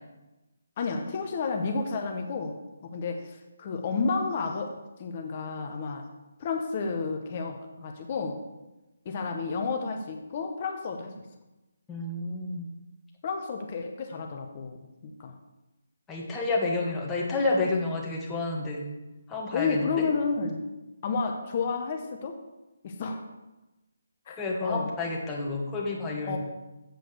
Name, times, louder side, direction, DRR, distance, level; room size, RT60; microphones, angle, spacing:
voice 1, 0.8-4.7 5.0-6.1 6.4-8.4 9.0-11.2 13.2-14.8 15.0-15.3 19.5-20.6 21.0-22.4 22.8-23.2 24.3-25.0 26.2-26.4, left 4 dB, 35° left, 4 dB, 0.8 m, -31 dB
voice 2, 11.9-12.7 16.1-18.8 19.3-20.0 24.4-26.4, left 3 dB, 10° left, -3 dB, 1.4 m, -30 dB
7.8 x 5.1 x 6.4 m, 1.0 s
figure-of-eight pair, 155°, 0 cm